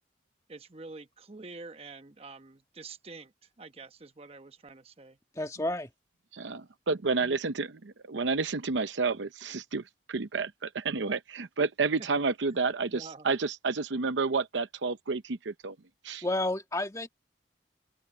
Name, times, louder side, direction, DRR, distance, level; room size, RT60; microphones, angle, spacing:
voice 1, 0.5-3.3 3.6-5.2 12.9-13.3, right 3 dB, 35° right, 1.0 m, -47 dB
voice 2, 5.3-5.9 16.2-17.1, left 1 dB, 20° left, 1.5 m, -30 dB
voice 3, 6.3-15.8 16.0-16.3, right 4 dB, 90° right, 0.7 m, -30 dB
open air
head